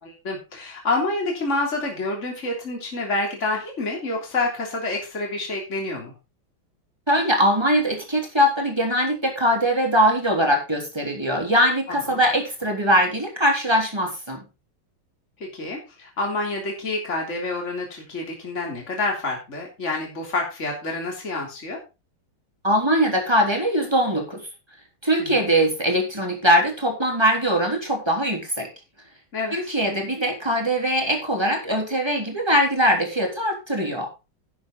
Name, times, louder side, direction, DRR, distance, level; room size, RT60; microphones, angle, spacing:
voice 1, 0.0-6.1 11.9-12.2 15.4-21.8 25.2-25.5 29.3-29.7, left 2 dB, 35° left, 0 dB, 3.6 m, -28 dB
voice 2, 7.1-14.4 22.6-24.4 25.0-28.7 29.5-34.1, equal, 10° right, 2 dB, 3.7 m, -21 dB
11.5 x 9.2 x 3.9 m, 0.28 s
omnidirectional pair, 2.2 m